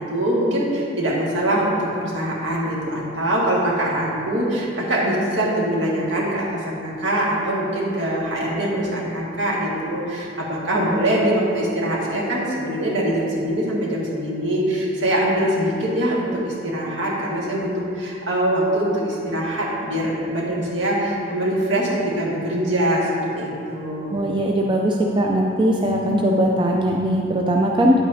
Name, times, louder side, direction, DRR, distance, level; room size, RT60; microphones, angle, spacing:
voice 1, 0.0-24.1, right 1 dB, 75° right, -5 dB, 1.9 m, -23 dB
voice 2, 24.1-27.9, right 1 dB, 25° right, -1 dB, 0.4 m, -20 dB
9.5 x 8.1 x 2.8 m, 2.6 s
head